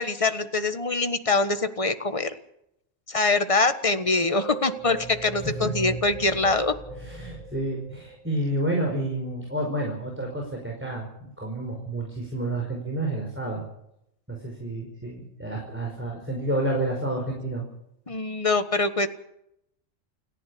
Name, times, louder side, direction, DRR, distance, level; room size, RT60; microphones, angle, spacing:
voice 1, 0.0-2.3 3.1-6.7 18.1-19.1, left 3 dB, 25° left, 9 dB, 1.5 m, -24 dB
sound 1, 3.9-8.5, right 4 dB, 25° right, 7.1 m, -37 dB
voice 2, 5.4-5.7 7.0-13.6 14.3-17.7, right 1 dB, 10° right, 0 dB, 5.1 m, -30 dB
29.0 x 11.5 x 8.6 m, 0.78 s
omnidirectional pair, 1.3 m